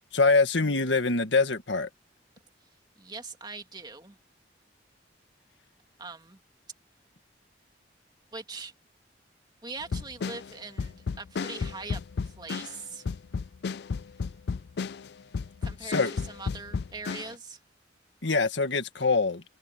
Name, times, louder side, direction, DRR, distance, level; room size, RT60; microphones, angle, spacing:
voice 1, 0.1-1.9 15.8-16.1 18.2-19.4, left 3 dB, 85° left, 1.8 m, -24 dB
voice 2, 3.0-4.2 6.0-6.4 8.3-8.7 9.6-13.1 15.6-17.6, right 4 dB, 25° right, 2.5 m, -42 dB
sound 1, 9.8-17.4, left 5 dB, 60° left, 0.4 m, -33 dB
head